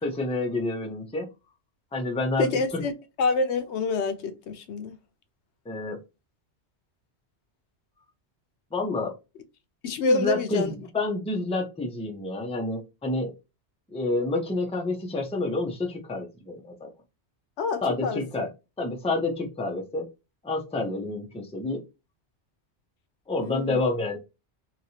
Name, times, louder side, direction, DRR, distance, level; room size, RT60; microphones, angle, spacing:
voice 1, 0.0-1.3 1.9-2.8 5.7-6.0 8.7-9.2 10.1-13.3 13.9-16.9 17.8-18.5 18.8-20.1 20.4-21.8 23.3-24.2, left 2 dB, 10° left, 0.5 m, -29 dB
voice 2, 2.4-2.9 3.2-5.0 9.8-10.7 17.6-18.2 23.4-23.8, left 3 dB, 80° left, 0.9 m, -26 dB
3.0 x 2.8 x 2.7 m
omnidirectional pair, 1.1 m